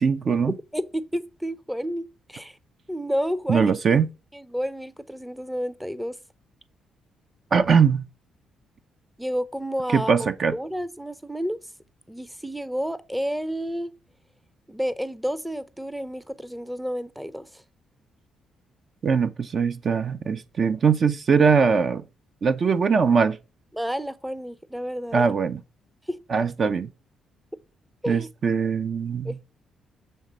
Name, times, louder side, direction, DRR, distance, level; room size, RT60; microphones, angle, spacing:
voice 1, 0.0-0.6 3.5-4.1 7.5-8.1 9.9-10.5 19.0-22.0 22.4-23.4 25.1-25.6 26.3-26.9 28.1-29.4, right 5 dB, 55° right, 0.6 m, -21 dB
voice 2, 0.7-2.6 2.9-3.8 4.3-6.2 9.2-11.6 12.1-13.9 14.7-17.5 23.7-25.3 26.1-26.2 28.0-28.3 29.2-29.4, equal, 5° right, 0.6 m, -30 dB
7.1 x 3.3 x 5.0 m
supercardioid pair, 55°, 0 cm